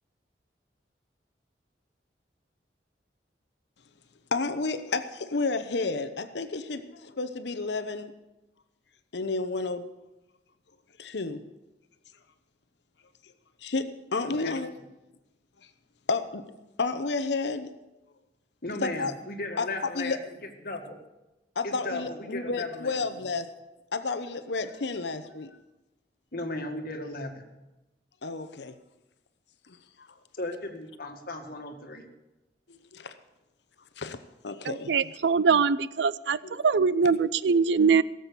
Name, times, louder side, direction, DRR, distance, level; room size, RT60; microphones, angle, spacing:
voice 1, 4.3-8.1 9.1-9.8 11.0-11.4 13.6-14.7 16.1-16.5 16.8-17.7 18.8-19.1 19.6-19.7 19.9-20.2 21.6-23.5 23.9-25.5 28.2-28.7 29.7-30.1 32.7-33.1 34.0-34.2 34.4-34.5 36.4-36.6, left 3 dB, 75° left, 10 dB, 0.9 m, -31 dB
voice 2, 14.2-14.5 18.6-20.2 20.6-21.0 21.6-23.2 26.3-27.5 30.4-32.1, left 2 dB, 55° left, 4 dB, 1.9 m, -36 dB
voice 3, 35.2-36.4 36.6-38.0, right 5 dB, 75° right, 18 dB, 0.5 m, -22 dB
17.5 x 7.7 x 6.9 m, 0.99 s
head